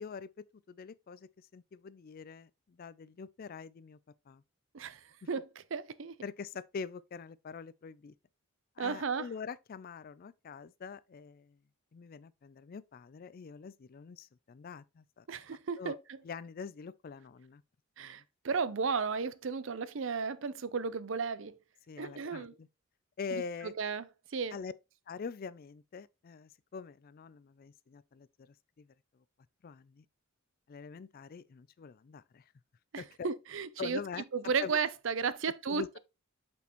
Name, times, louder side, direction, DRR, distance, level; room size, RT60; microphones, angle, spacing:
voice 1, 0.0-4.0 4.3-4.4 6.2-8.1 8.8-11.6 11.9-15.3 15.8-16.0 16.2-17.6 18.0-18.2 21.9-22.7 23.2-23.7 24.5-24.7 25.1-29.2 29.6-30.0 30.7-32.5 33.0-33.3 33.8-34.2 34.6-34.8 35.7-36.0, left 5 dB, 45° left, 0.3 m, -44 dB
voice 2, 5.7-6.1 8.8-9.2 15.3-16.0 18.0-21.6 22.0-22.5 23.3-23.4 23.8-24.0 24.3-24.6 32.9-34.0 34.3-36.0, right 5 dB, 65° right, 0.5 m, -34 dB
6.2 x 5.8 x 3.0 m
head